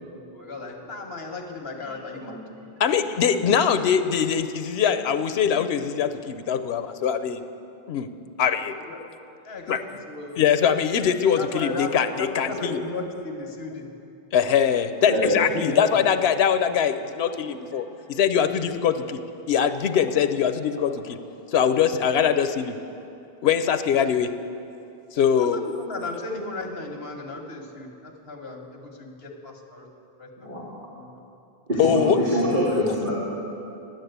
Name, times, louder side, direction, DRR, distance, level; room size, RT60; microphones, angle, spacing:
voice 1, 0.0-2.4 8.9-9.0 9.4-10.4 11.3-13.9 15.4-16.0 25.4-29.9 30.2-30.5 30.9-31.2, left 3 dB, 70° left, 2 dB, 1.6 m, -35 dB
voice 2, 2.8-7.4 7.9-8.1 8.4-8.7 9.7-9.8 10.4-12.8 14.3-19.2 19.5-21.2 21.5-22.8 23.4-24.4 25.1-25.6 31.8-32.2, left 8 dB, 90° left, 11 dB, 0.9 m, -22 dB
voice 3, 15.0-15.4 30.4-30.6 31.7-33.1, equal, 50° right, -8 dB, 2.3 m, -24 dB
10.5 x 9.2 x 8.0 m, 2.7 s
omnidirectional pair, 1.0 m